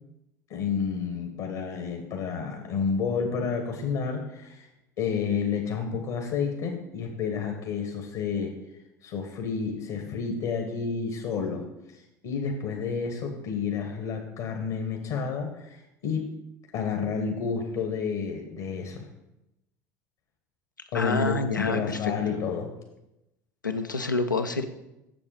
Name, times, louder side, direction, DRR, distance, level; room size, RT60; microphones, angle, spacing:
voice 1, 0.5-4.7 5.0-8.5 9.0-11.6 12.2-16.3 16.7-19.0 20.9-22.7, left 6 dB, 55° left, 3 dB, 1.3 m, -30 dB
voice 2, 20.9-22.1 23.6-24.6, left 3 dB, 90° left, 7 dB, 0.6 m, -27 dB
7.8 x 7.1 x 5.0 m, 0.91 s
figure-of-eight pair, 70°, 10 cm